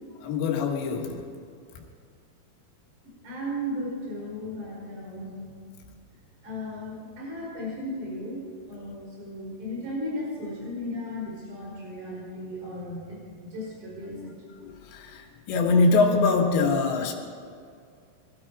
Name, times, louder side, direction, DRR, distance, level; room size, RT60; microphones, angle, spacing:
voice 1, 0.2-1.2 14.1-14.3 14.6-17.1, left 3 dB, 80° left, 2 dB, 3.8 m, -23 dB
voice 2, 3.2-5.3 6.4-14.3, left 1 dB, 45° right, -4 dB, 6.1 m, -35 dB
22.0 x 12.5 x 4.8 m, 2.2 s
omnidirectional pair, 5.1 m